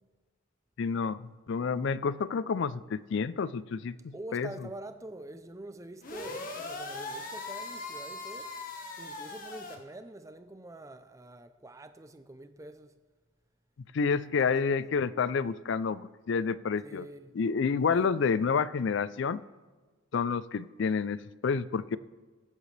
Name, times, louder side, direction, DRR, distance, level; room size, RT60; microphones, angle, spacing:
voice 1, 0.8-4.5 13.9-17.1 17.3-19.4 20.1-22.0, left 5 dB, 60° left, 0.4 m, -29 dB
voice 2, 4.1-8.5 9.0-13.0 14.3-14.8 16.8-17.4 17.9-18.1, right 1 dB, 15° right, 0.5 m, -46 dB
sound 1, 6.0-9.8, left 3 dB, 40° left, 1.4 m, -40 dB
22.5 x 7.7 x 3.3 m
head